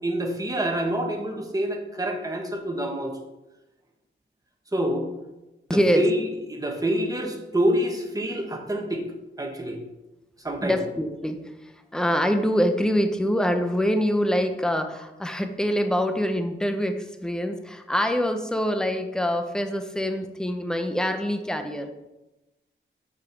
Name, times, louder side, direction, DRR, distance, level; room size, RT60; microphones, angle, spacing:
voice 1, 0.0-3.2 4.7-5.1 5.7-6.2 6.5-9.0 9.4-9.8 10.4-10.8, right 1 dB, 15° right, 2 dB, 1.3 m, -26 dB
voice 2, 5.7-6.0 10.6-21.9, equal, 5° left, 7 dB, 0.7 m, -25 dB
7.4 x 6.3 x 4.6 m, 1.0 s
wide cardioid pair, 130°, 21 cm